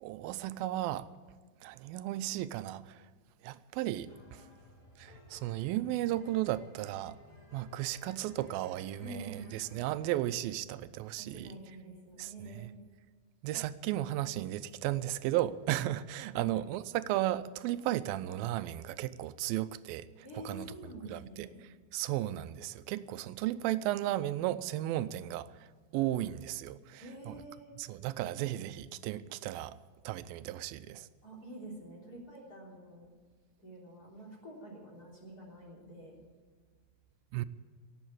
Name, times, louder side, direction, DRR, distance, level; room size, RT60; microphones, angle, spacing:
voice 1, 0.0-1.1 1.6-3.0 3.4-4.4 5.0-7.2 7.5-11.5 12.2-12.7 13.4-20.1 20.5-20.7 21.1-21.5 21.9-25.5 25.9-27.4 27.8-29.8 30.0-31.1 37.3-37.5, right 14 dB, 85° right, 2.4 m, -34 dB
sound 1, 4.1-10.3, left 2 dB, 50° left, 4.4 m, -56 dB
voice 2, 9.0-9.6 11.2-12.8 16.3-16.5 20.2-21.6 27.0-27.8 31.2-33.1 33.6-36.2, right 1 dB, 25° left, 3.5 m, -48 dB
17.0 x 8.0 x 8.8 m
omnidirectional pair, 4.2 m